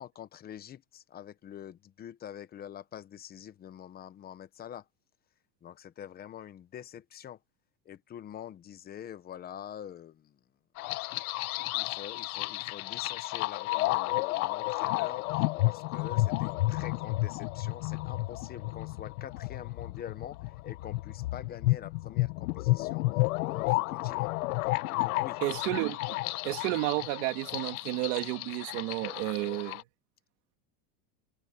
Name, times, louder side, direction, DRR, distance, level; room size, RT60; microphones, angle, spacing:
voice 1, 0.0-4.8 5.6-7.4 7.9-10.3 10.9-20.4 20.6-23.1 23.4-24.3 25.0-25.4, left 10 dB, 20° left, 0.9 m, -45 dB
sound 1, 10.8-29.8, left 19 dB, 75° left, 1.3 m, -32 dB
voice 2, 25.4-26.2 26.4-29.8, right 22 dB, 60° right, 2.1 m, -32 dB
supercardioid pair, 160°, 43 cm